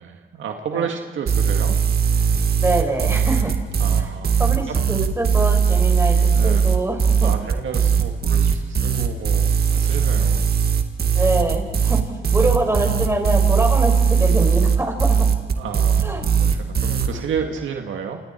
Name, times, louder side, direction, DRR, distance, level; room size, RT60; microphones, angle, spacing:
voice 1, 0.0-1.8 3.8-4.4 4.7-4.8 6.3-6.7 7.2-10.5 15.6-18.2, right 7 dB, 75° right, 3 dB, 1.9 m, -31 dB
sound 1, 1.3-17.1, right 6 dB, 50° right, 2.0 m, -18 dB
voice 2, 2.6-3.5 4.4-6.2 6.4-7.3 11.2-12.0 12.3-15.3 16.0-16.3, right 2 dB, 15° right, 3 dB, 5.2 m, -24 dB
28.5 x 28.0 x 4.5 m, 1.3 s
cardioid pair, 80°, 20 cm